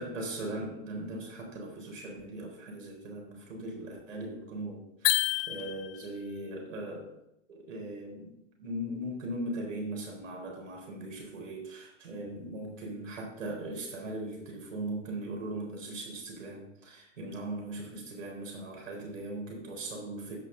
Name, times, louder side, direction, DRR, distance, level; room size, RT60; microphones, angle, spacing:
voice 1, 0.0-5.2 5.5-7.1 7.5-20.4, right 1 dB, 85° right, 0 dB, 4.0 m, -39 dB
sound 1, 5.0-6.2, left 16 dB, 50° left, 0.7 m, -29 dB
15.5 x 5.9 x 3.9 m, 0.84 s
hypercardioid pair, 110°, 37 cm